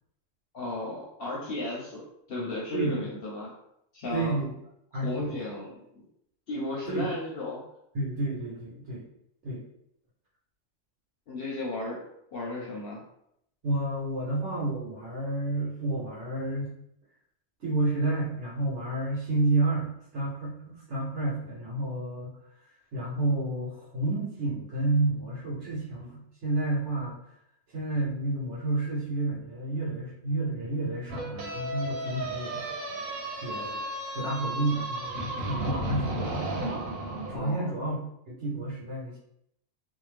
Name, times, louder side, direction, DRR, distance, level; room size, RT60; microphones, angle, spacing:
voice 1, 0.5-2.0 2.3-3.6 3.9-4.4 4.9-5.8 6.5-7.6 11.3-12.0 12.3-13.0 37.3-37.7, left 2 dB, 55° left, -4 dB, 0.7 m, -34 dB
voice 2, 4.1-4.5 4.9-5.4 6.9-7.1 7.9-9.0 9.4-9.6 13.6-16.7 17.6-22.4 22.9-27.2 27.7-32.6 33.4-33.8 34.1-36.7 37.3-38.0 38.3-39.2, right 2 dB, 60° right, -5 dB, 1.1 m, -30 dB
sound 1, 31.1-37.3, right 1 dB, 85° right, 1.1 m, -33 dB
2.6 x 2.0 x 3.2 m, 0.75 s
omnidirectional pair, 1.4 m